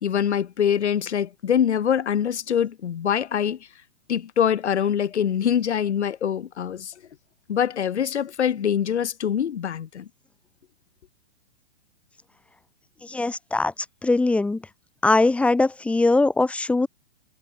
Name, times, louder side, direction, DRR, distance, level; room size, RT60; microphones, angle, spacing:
voice 1, 0.0-3.6 4.1-6.9 7.5-10.1, left 8 dB, 90° left, 1.8 m, -24 dB
voice 2, 13.0-13.7 14.0-14.6 15.0-16.9, left 2 dB, 5° left, 0.9 m, -21 dB
hypercardioid pair, 150°, 33 cm